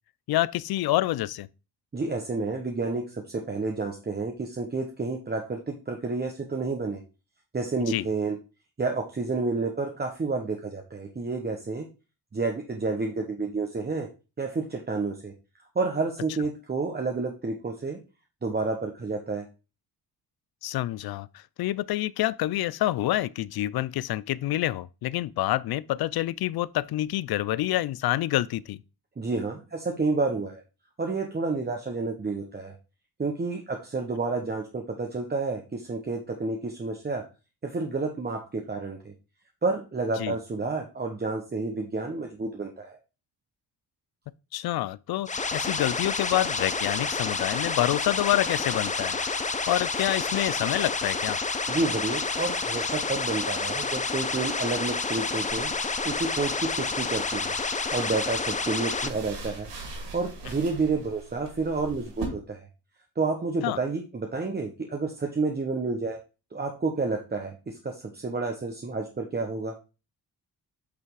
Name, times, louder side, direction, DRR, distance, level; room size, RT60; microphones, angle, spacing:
voice 1, 0.3-1.5 7.9-8.1 20.6-21.3 21.6-28.8 40.2-40.4 44.5-51.4 63.6-63.8, left 15 dB, 65° left, 0.5 m, -27 dB
voice 2, 1.9-7.0 7.5-8.4 8.8-11.9 12.3-14.1 14.4-15.3 15.7-18.0 18.4-19.4 29.2-30.6 31.0-32.8 33.2-37.3 37.6-39.1 39.6-43.0 51.7-55.7 56.0-57.5 57.9-59.7 60.1-62.7 63.2-66.2 66.5-69.7, right 3 dB, 25° right, 1.1 m, -30 dB
sound 1, 45.3-59.1, left 4 dB, 20° left, 0.7 m, -29 dB
sound 2, 55.5-62.2, right 3 dB, 85° right, 2.3 m, -43 dB
8.4 x 3.3 x 4.7 m
cardioid pair, 95°, 40 cm